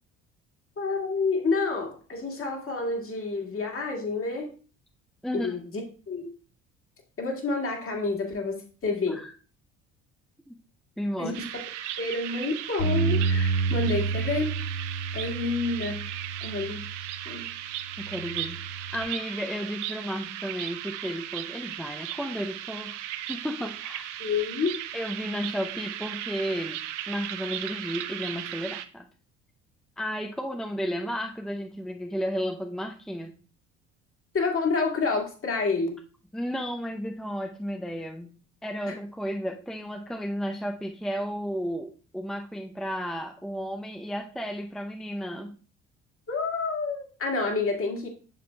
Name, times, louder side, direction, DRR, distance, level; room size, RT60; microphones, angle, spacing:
voice 1, 0.8-4.5 5.3-6.3 7.2-9.2 11.2-11.3 12.0-14.5 15.1-16.0 16.4-16.8 17.3-17.4 24.2-24.7 34.3-35.9 38.9-39.0 46.3-48.1, left 4 dB, 35° left, 1 dB, 1.9 m, -29 dB
voice 2, 5.2-5.5 9.1-9.3 10.5-10.6 11.0-11.3 18.0-23.0 23.3-24.1 24.9-26.8 27.1-29.0 30.0-33.3 36.3-38.4 38.6-45.6, equal, ahead, 3 dB, 0.6 m, -33 dB
sound 1, 11.3-28.8, right 12 dB, 80° right, 0.5 m, -37 dB
Bass guitar, 12.8-17.2 17.9-19.0, right 4 dB, 75° left, 3.3 m, -30 dB
7.8 x 6.7 x 2.2 m, 0.38 s
hypercardioid pair, 55°, 36 cm